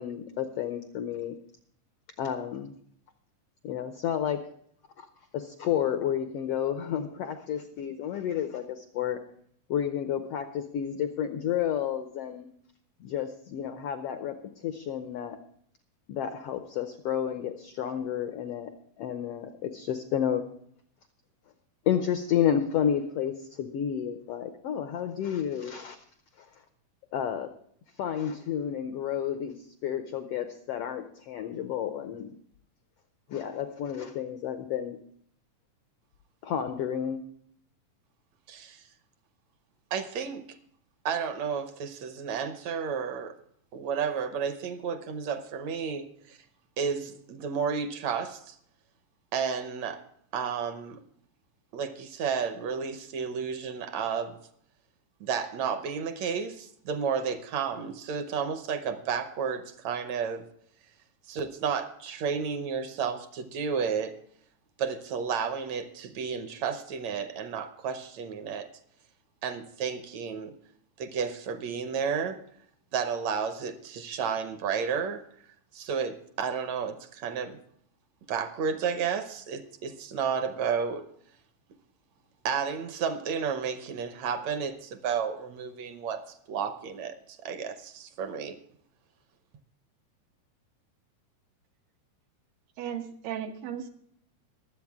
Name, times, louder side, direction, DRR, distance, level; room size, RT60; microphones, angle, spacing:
voice 1, 0.0-1.4 2.2-2.7 3.6-4.4 5.0-5.1 5.3-9.2 9.7-12.5 13.0-15.4 16.1-18.7 19.0-20.5 21.9-26.0 26.4-26.5 27.1-27.5 28.0-32.3 33.3-35.0 36.4-37.2, left 9 dB, 85° left, 8 dB, 1.3 m, -31 dB
voice 2, 38.5-38.8 39.9-40.5 41.1-43.4 43.7-46.4 46.8-48.6 49.3-50.0 50.3-51.0 51.7-54.4 55.2-60.5 61.3-64.2 64.8-68.7 69.4-70.5 71.0-72.4 72.9-75.2 75.7-77.6 78.3-81.1 82.5-86.2 86.5-88.6, right 6 dB, 70° right, 9 dB, 1.9 m, -32 dB
voice 3, 92.8-93.9, right 9 dB, 85° right, 4 dB, 2.8 m, -35 dB
22.5 x 8.0 x 3.6 m, 0.66 s
omnidirectional pair, 3.8 m